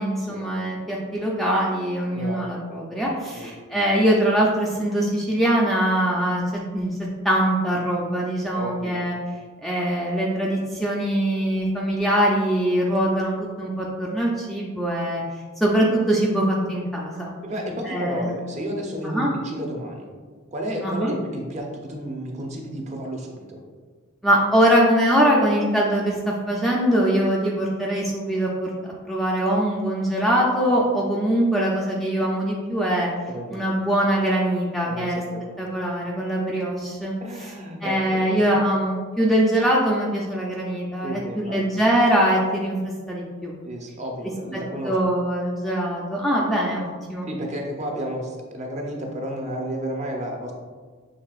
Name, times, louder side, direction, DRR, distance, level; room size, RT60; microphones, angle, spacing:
voice 1, 0.0-6.4 6.7-6.9 7.2-9.1 9.6-15.2 15.6-17.3 17.9-18.3 19.1-19.3 20.8-21.1 24.2-33.1 33.5-35.2 35.6-37.1 37.8-42.8 43.1-43.5 44.9-47.3, right 1 dB, ahead, -4 dB, 0.4 m, -22 dB
voice 2, 2.1-2.5 3.3-3.5 8.5-9.0 17.4-20.1 20.5-23.6 33.3-33.6 34.8-35.4 37.2-38.5 41.0-41.6 43.6-45.0 47.2-50.5, equal, 35° right, 0 dB, 0.7 m, -32 dB
6.5 x 3.3 x 2.4 m, 1.5 s
head